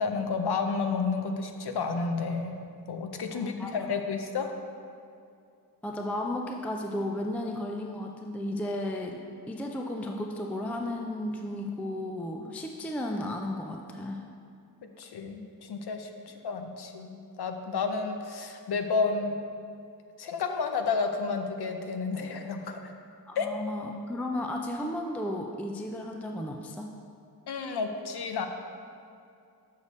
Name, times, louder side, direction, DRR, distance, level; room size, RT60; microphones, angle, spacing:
voice 1, 0.0-2.6 2.9-4.5 15.0-19.4 20.2-22.9 23.4-23.5 27.5-28.5, left 4 dB, 70° left, 5 dB, 0.7 m, -31 dB
voice 2, 3.3-3.9 5.8-9.2 9.5-14.2 23.3-26.9, left 1 dB, 5° left, 2 dB, 0.4 m, -34 dB
6.6 x 6.4 x 4.1 m, 2.4 s
wide cardioid pair, 120°, 40 cm